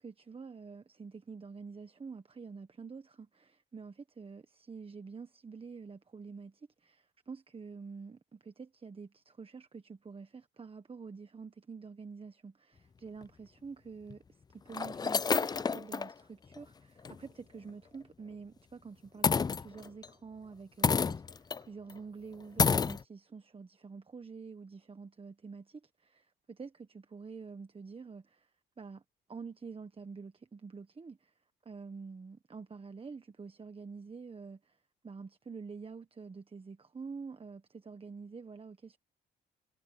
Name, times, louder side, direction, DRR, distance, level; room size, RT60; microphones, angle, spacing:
voice 1, 0.0-28.5 28.8-29.0 29.3-31.3 31.6-34.8 35.0-39.0, right 5 dB, 30° right, 1.4 m, -47 dB
sound 1, 13.2-13.3 14.1-14.2 14.7-16.1 16.6-16.7 17.0-17.2 19.2-20.1 20.8-21.6 21.9-22.0 22.6-23.0, left 5 dB, 20° left, 0.3 m, -29 dB
cardioid pair, 90°, 20 cm